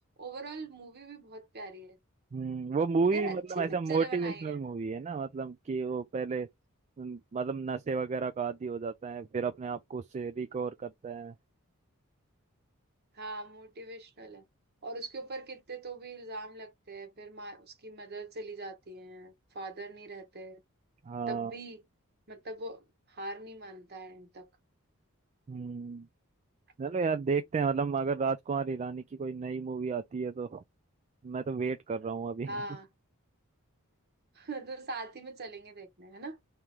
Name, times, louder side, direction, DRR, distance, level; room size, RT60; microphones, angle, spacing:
voice 1, 0.2-2.0 3.1-4.6 13.1-14.4 14.8-20.6 21.3-21.8 22.3-24.5 32.5-32.9 34.3-36.4, right 2 dB, 50° right, 1.2 m, -42 dB
voice 2, 2.3-6.5 7.0-11.3 21.1-21.5 25.5-26.1 26.8-30.6 31.2-32.6, right 5 dB, 30° right, 0.3 m, -32 dB
3.2 x 2.9 x 3.6 m
head